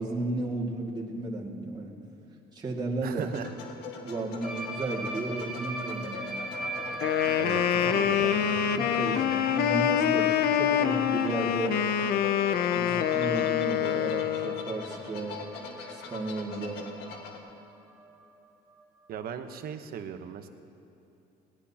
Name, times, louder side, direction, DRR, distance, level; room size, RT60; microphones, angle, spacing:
voice 1, 0.0-2.0 2.5-3.2 4.0-6.4 7.8-7.9 8.2-11.8 12.7-15.4 15.9-16.9, right 2 dB, 25° right, -3 dB, 2.1 m, -34 dB
voice 2, 3.0-3.6 7.4-8.3 19.1-20.5, right 8 dB, 65° right, 8 dB, 1.1 m, -37 dB
sound 1, 3.2-17.4, left 4 dB, 85° left, 1.7 m, -42 dB
sound 2, 4.4-16.3 16.6-16.8 17.1-17.3 17.6-17.7 18.0-18.1 19.2-19.3, right 2 dB, ahead, 2.0 m, -40 dB
Wind instrument woodwind instrument, 6.9-14.7, left 10 dB, 65° left, 0.6 m, -26 dB
20.5 x 17.5 x 2.9 m, 2.9 s
cardioid pair, 110°, 17 cm